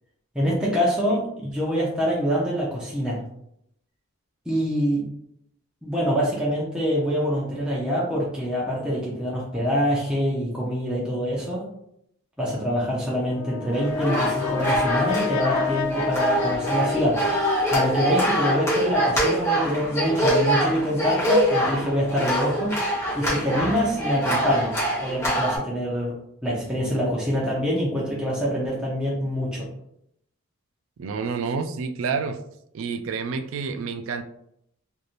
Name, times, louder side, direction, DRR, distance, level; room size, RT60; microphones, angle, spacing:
voice 1, 0.3-3.2 4.5-5.1 5.8-11.7 12.4-17.2 17.7-22.7 23.1-26.1 26.4-29.7, equal, 5° right, -6 dB, 0.6 m, -25 dB
Brass instrument, 13.3-17.7, left 7 dB, 70° left, 0.4 m, -29 dB
sound 1, 13.7-25.6, equal, 15° left, 0.9 m, -24 dB
voice 2, 31.0-32.4 32.7-34.2, right 5 dB, 65° right, 9 dB, 0.3 m, -29 dB
3.2 x 2.7 x 2.5 m, 0.74 s
head